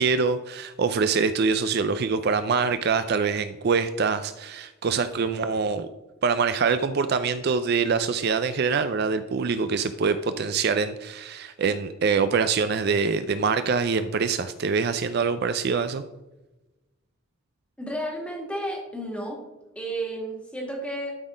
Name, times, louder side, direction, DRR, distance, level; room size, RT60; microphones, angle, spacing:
voice 1, 0.0-5.9 6.2-16.0, right 5 dB, 50° right, 11 dB, 0.4 m, -24 dB
voice 2, 17.8-19.4 19.8-21.1, right 1 dB, 5° left, -1 dB, 1.9 m, -32 dB
12.5 x 4.1 x 5.0 m, 1.0 s
head